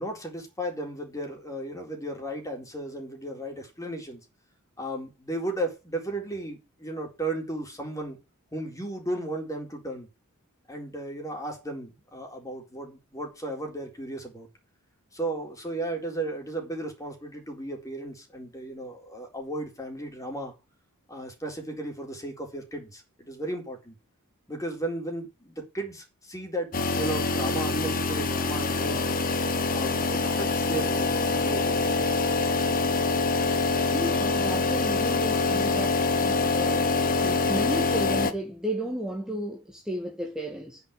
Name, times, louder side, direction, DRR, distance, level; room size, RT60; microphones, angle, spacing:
voice 1, 0.0-4.2 4.8-8.2 8.5-10.1 10.7-14.5 15.1-20.5 21.1-23.9 24.5-29.1 29.7-32.1, right 1 dB, 15° left, 4.1 m, -35 dB
sound 1, 26.7-38.3, left 3 dB, 40° left, 1.4 m, -25 dB
voice 2, 33.9-36.9 37.2-40.8, right 1 dB, 5° right, 1.9 m, -33 dB
9.8 x 6.2 x 8.6 m
head